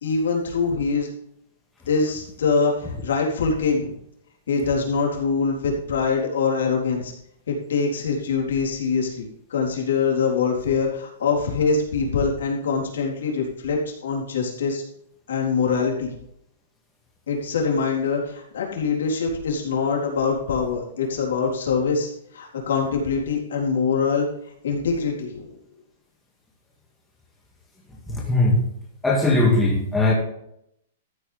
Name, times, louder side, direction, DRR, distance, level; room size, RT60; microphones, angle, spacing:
voice 1, 0.0-1.1 1.9-3.9 4.5-7.1 7.5-14.8 15.3-16.1 17.3-24.3 24.6-25.5, left 5 dB, 85° left, -1 dB, 3.9 m, -24 dB
voice 2, 28.1-28.6 29.0-30.1, left 2 dB, 5° left, -3 dB, 2.1 m, -19 dB
13.5 x 9.1 x 3.5 m, 0.74 s
hypercardioid pair, 180°, 0 cm